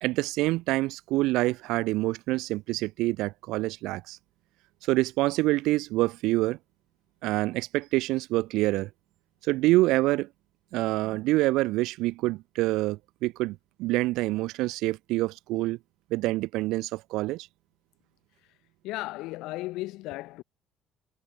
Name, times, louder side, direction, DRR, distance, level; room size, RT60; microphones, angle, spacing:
voice 1, 0.0-4.2 4.9-6.6 7.2-8.9 9.4-10.3 10.7-15.8 16.1-17.5, right 19 dB, 65° right, 1.3 m, -26 dB
voice 2, 18.8-20.4, left 19 dB, 65° left, 7.0 m, -35 dB
figure-of-eight pair, 50°, 0 cm